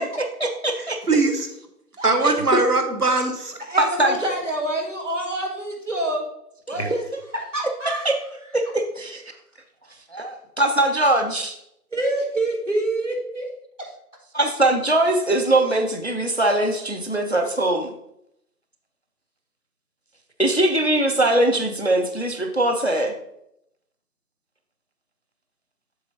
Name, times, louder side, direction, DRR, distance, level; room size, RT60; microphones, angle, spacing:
voice 1, 0.0-1.0 2.2-2.6 3.8-4.2 6.7-7.0 8.0-8.1 8.5-9.2 10.1-11.6 14.3-17.9 20.4-23.1, right 1 dB, 45° left, 5 dB, 0.6 m, -21 dB
voice 2, 1.1-1.5 2.0-3.6, right 3 dB, 65° right, 6 dB, 1.2 m, -20 dB
voice 3, 3.6-6.3 6.7-7.0 7.3-8.1 11.9-13.5 13.8-13.9, right 1 dB, 50° right, 1 dB, 1.7 m, -26 dB
7.7 x 7.1 x 2.7 m, 0.79 s
figure-of-eight pair, 175°, 48 cm